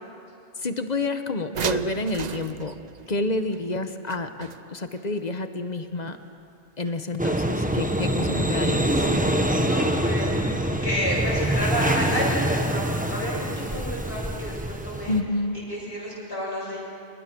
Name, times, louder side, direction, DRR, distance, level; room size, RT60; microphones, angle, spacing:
voice 1, 0.6-2.7 3.1-6.2 6.8-9.0 15.1-15.6, left 2 dB, 40° left, 8 dB, 1.1 m, -29 dB
sound 1, 1.5-5.0 6.9-7.0 7.3-7.4, right 7 dB, 45° right, 0.7 m, -34 dB
sound 2, 7.2-15.2, right 1 dB, 10° right, 1.2 m, -25 dB
voice 2, 9.6-15.1 15.7-16.8, equal, 65° left, -6 dB, 8.4 m, -30 dB
28.0 x 21.0 x 6.2 m, 2.5 s
omnidirectional pair, 1.1 m